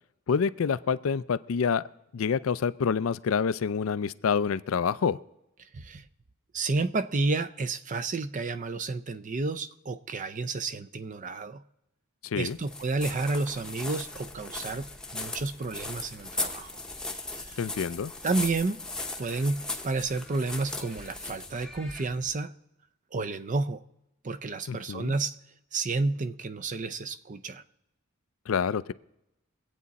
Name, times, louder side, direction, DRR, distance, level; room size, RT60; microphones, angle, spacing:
voice 1, 0.3-1.8 2.1-5.2 12.2-12.6 17.6-18.1 24.7-25.1 28.5-28.9, left 6 dB, 70° left, 16 dB, 0.4 m, -27 dB
voice 2, 5.7-6.1 6.5-11.6 12.4-16.8 17.3-17.6 18.2-18.8 19.2-22.5 23.1-23.8 24.2-25.4 25.7-27.6, right 3 dB, 35° right, 13 dB, 0.5 m, -31 dB
sound 1, 12.4-22.3, left 2 dB, 5° left, 0.8 m, -38 dB
23.0 x 8.4 x 4.1 m, 0.87 s
head